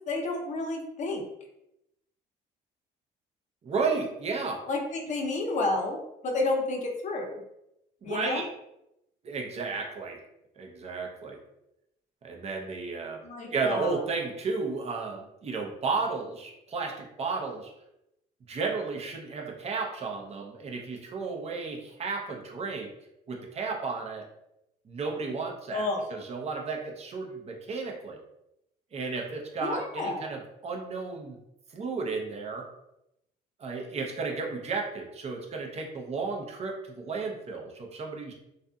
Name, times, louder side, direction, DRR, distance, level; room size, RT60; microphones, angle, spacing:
voice 1, 0.1-1.2 4.7-7.4 8.0-8.4 13.2-14.0 25.7-26.0 29.6-30.3, left 2 dB, 45° left, 2 dB, 0.6 m, -30 dB
voice 2, 3.6-4.6 8.0-8.5 9.2-10.2 10.6-11.4 12.2-13.2 13.5-17.7 18.5-22.9 23.3-24.2 24.9-28.2 28.9-31.4 31.7-32.7 33.6-38.3, right 4 dB, 40° right, 1 dB, 0.6 m, -33 dB
2.6 x 2.5 x 2.3 m, 0.84 s
cardioid pair, 110°, 17 cm